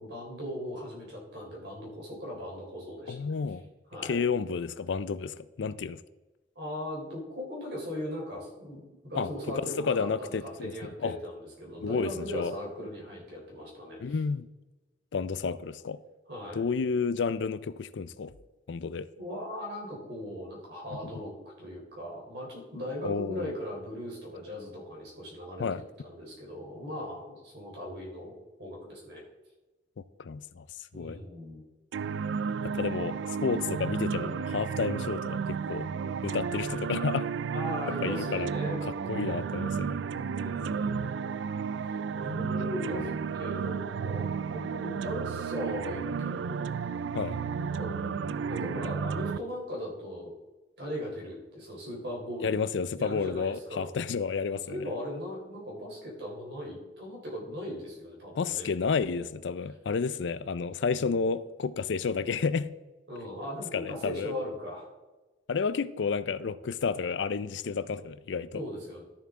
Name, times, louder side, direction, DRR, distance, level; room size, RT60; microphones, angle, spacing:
voice 1, 0.0-3.2 3.9-4.2 6.6-14.1 16.3-16.6 19.2-21.3 21.6-28.3 28.6-29.2 30.9-31.6 37.5-38.8 40.4-41.0 41.7-43.1 43.3-46.6 47.6-48.1 48.5-50.3 50.8-52.6 52.9-53.9 54.7-58.7 60.8-61.2 63.1-64.9 68.5-69.0, equal, 65° right, 3.7 m, -38 dB
voice 2, 3.1-3.6 4.0-6.0 9.2-9.3 9.8-11.2 11.8-12.5 14.0-14.5 15.1-16.0 16.6-18.3 18.7-19.1 23.0-23.5 25.6-25.8 30.2-30.7 30.9-31.2 32.6-35.9 36.2-37.3 38.0-38.5 39.1-40.0 40.9-41.1 42.9-43.1 47.1-47.4 52.4-54.9 58.3-62.7 63.7-64.3 65.5-68.6, left 5 dB, 80° left, 0.4 m, -31 dB
sound 1, 31.9-49.4, right 6 dB, 85° right, 0.3 m, -32 dB
13.0 x 6.9 x 3.7 m
head